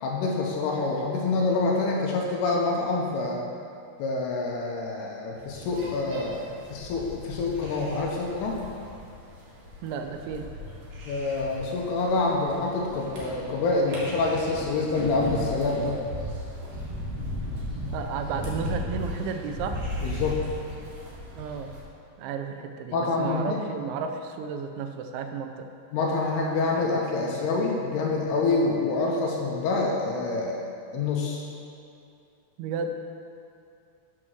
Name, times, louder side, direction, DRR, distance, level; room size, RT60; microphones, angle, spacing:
voice 1, 0.0-3.4 4.0-8.6 11.0-16.0 20.0-20.4 22.9-23.6 25.9-30.6 30.9-31.5, left 3 dB, 80° left, -1 dB, 2.6 m, -26 dB
sound 1, 5.4-21.8, left 1 dB, 60° right, 3.3 m, -36 dB
voice 2, 9.8-10.5 17.9-19.9 21.4-21.7 22.2-25.7 32.6-33.0, right 5 dB, 90° right, 6 dB, 3.0 m, -33 dB
7.8 x 6.1 x 6.1 m, 2.5 s
omnidirectional pair, 5.2 m